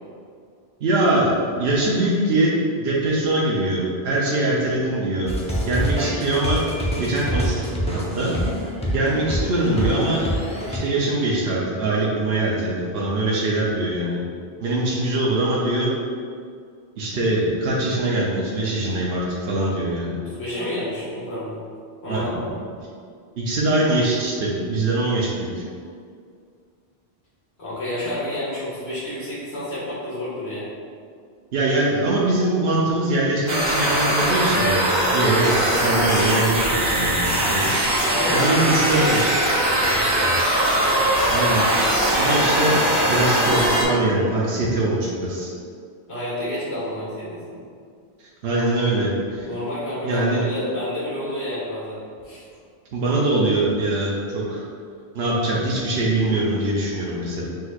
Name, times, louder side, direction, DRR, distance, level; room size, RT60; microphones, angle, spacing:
voice 1, 0.8-5.3 5.7-6.6 7.0-8.3 8.9-10.3 10.7-14.2 14.6-15.9 17.0-20.2 22.1-22.4 23.4-25.6 31.5-37.8 38.3-39.3 41.3-41.7 42.1-42.8 43.1-45.5 48.4-49.5 50.0-50.4 52.9-54.6 55.1-57.5, right 2 dB, 70° right, -5 dB, 0.9 m, -22 dB
sound 1, 5.3-10.8, equal, 10° left, 0.5 m, -26 dB
voice 2, 20.1-21.6 22.0-22.5 27.6-30.7 38.0-40.1 46.1-47.6 49.4-52.5, left 1 dB, 75° left, -9 dB, 1.9 m, -29 dB
sound 2, 33.5-43.8, right 1 dB, 45° right, 0.9 m, -20 dB
6.2 x 3.2 x 2.4 m, 2.2 s
omnidirectional pair, 1.1 m